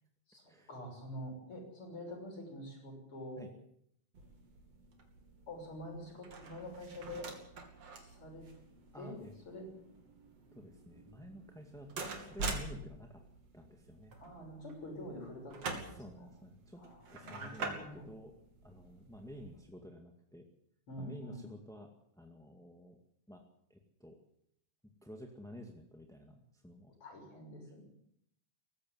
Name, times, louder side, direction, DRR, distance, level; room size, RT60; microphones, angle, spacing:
voice 1, 0.3-3.5 5.5-7.3 8.0-8.5 8.9-9.2 9.4-9.7 14.2-16.3 16.8-18.1 20.9-21.5 27.0-27.8, equal, 45° left, 2 dB, 7.2 m, -46 dB
sound 1, 4.1-19.6, right 3 dB, 55° right, 3.8 m, -46 dB
voice 2, 8.9-9.3 10.5-13.2 13.5-14.2 15.7-16.8 17.1-18.3 18.6-20.5 21.0-21.9 22.2-23.0 23.3-23.4 23.7-24.2 25.0-26.9, equal, ahead, 3 dB, 1.3 m, -51 dB
18.5 x 15.5 x 9.7 m, 0.72 s
omnidirectional pair, 3.5 m